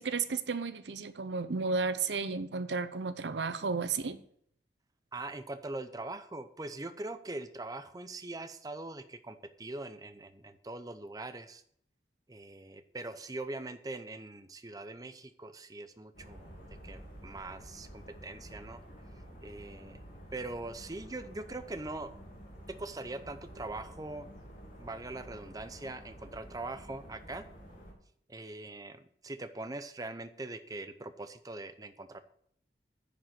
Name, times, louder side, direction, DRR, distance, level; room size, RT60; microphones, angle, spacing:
voice 1, 0.0-4.2, right 4 dB, 75° right, 12 dB, 0.7 m, -33 dB
voice 2, 5.1-11.6 12.3-16.5 16.8-18.8 19.4-20.0 20.3-22.1 22.7-24.3 24.8-27.5 28.3-32.2, right 2 dB, 20° right, 9 dB, 0.6 m, -42 dB
sound 1, 16.1-27.9, equal, 50° left, 3.0 m, -50 dB
10.0 x 5.2 x 7.6 m, 0.65 s
head